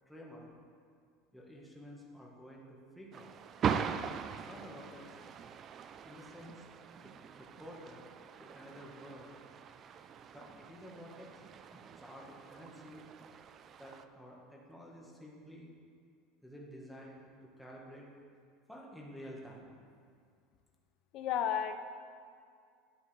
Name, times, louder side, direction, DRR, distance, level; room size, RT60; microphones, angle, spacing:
voice 1, 0.1-0.5 1.3-3.3 4.3-5.2 6.0-6.7 7.0-9.3 10.3-13.1 13.8-15.7 16.4-18.1 18.7-19.7, equal, ahead, -4 dB, 1.3 m, -51 dB
sound 1, 3.1-14.1, right 7 dB, 30° right, 0.3 m, -41 dB
voice 2, 21.1-21.8, left 9 dB, 45° left, 9 dB, 0.5 m, -32 dB
11.0 x 8.4 x 3.3 m, 2.2 s
supercardioid pair, 150°, 0 cm